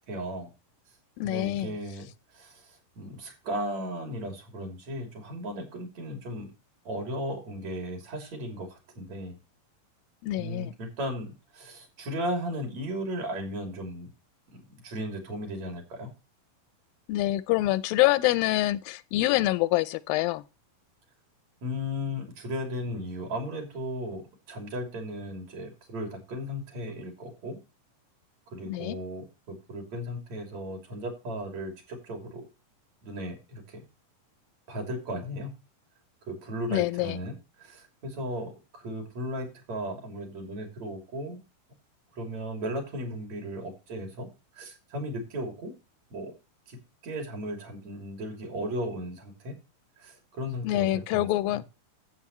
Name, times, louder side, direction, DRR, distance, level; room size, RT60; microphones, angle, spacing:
voice 1, 0.1-0.5 1.2-6.5 6.9-9.4 10.4-14.1 14.5-16.1 21.6-24.2 24.5-27.6 28.5-32.5 33.0-33.9 34.7-35.5 36.3-41.4 42.1-44.3 44.5-45.7 46.1-46.3 46.7-49.6 50.0-51.6, equal, 50° right, 4.1 m, -36 dB
voice 2, 1.2-1.7 10.2-10.7 17.1-20.4 28.7-29.0 36.7-37.2 50.6-51.6, left 16 dB, 90° left, 2.4 m, -26 dB
13.0 x 8.2 x 3.1 m
omnidirectional pair, 4.0 m